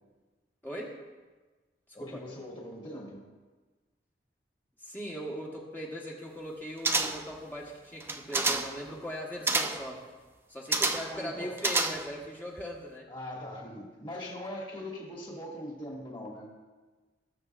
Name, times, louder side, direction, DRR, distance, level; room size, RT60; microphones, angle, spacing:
voice 1, 0.6-1.0 2.0-2.2 4.8-10.0 10.5-13.1, equal, 10° left, -3 dB, 1.2 m, -39 dB
voice 2, 1.9-3.3 11.1-11.6 13.1-16.5, left 1 dB, 25° left, -2 dB, 2.0 m, -41 dB
sound 1, 6.8-7.4 8.0-8.8 9.5-9.9 10.7-11.2 11.6-12.3 12.6-12.7, right 3 dB, 10° right, 0.4 m, -29 dB
19.0 x 6.7 x 2.4 m, 1.3 s
head